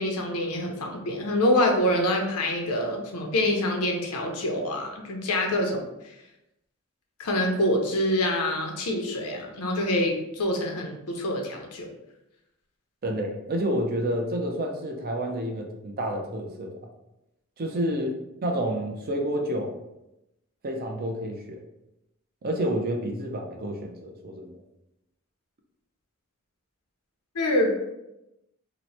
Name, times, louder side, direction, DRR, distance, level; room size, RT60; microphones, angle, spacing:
voice 1, 0.0-5.8 7.2-11.9 27.3-27.8, left 1 dB, 90° left, 2 dB, 0.7 m, -26 dB
voice 2, 13.0-16.7 17.6-19.7 20.6-21.6 22.4-24.6, equal, 45° right, 2 dB, 0.5 m, -29 dB
2.9 x 2.1 x 4.1 m, 0.90 s
head